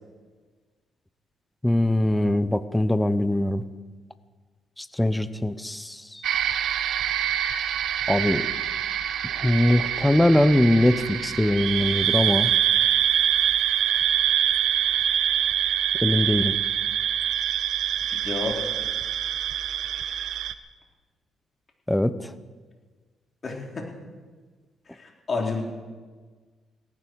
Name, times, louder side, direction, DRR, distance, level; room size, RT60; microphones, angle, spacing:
voice 1, 1.6-3.6 4.8-6.3 8.1-8.5 9.3-12.5 16.0-16.6 21.9-22.3, left 1 dB, 10° left, 13 dB, 0.8 m, -22 dB
sound 1, 6.2-20.5, right 10 dB, 75° right, 0.8 m, -25 dB
voice 2, 18.1-18.7 23.4-23.9 24.9-25.6, left 3 dB, 40° left, 0 dB, 3.7 m, -30 dB
18.0 x 17.0 x 4.7 m, 1.4 s
cardioid pair, 90°, 0 cm